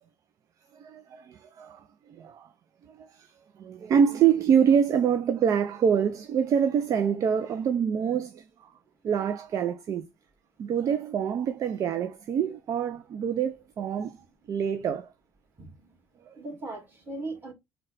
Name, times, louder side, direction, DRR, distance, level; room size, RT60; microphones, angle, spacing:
voice 1, 0.7-2.5 2.8-3.3 3.6-8.7 9.0-10.1 10.6-14.2 14.5-15.1 16.3-16.4, right 7 dB, 50° right, 0.4 m, -26 dB
voice 2, 15.6-15.9 16.4-17.5, right 2 dB, 25° right, 2.1 m, -38 dB
3.8 x 2.2 x 3.8 m
supercardioid pair, 80°, 8 cm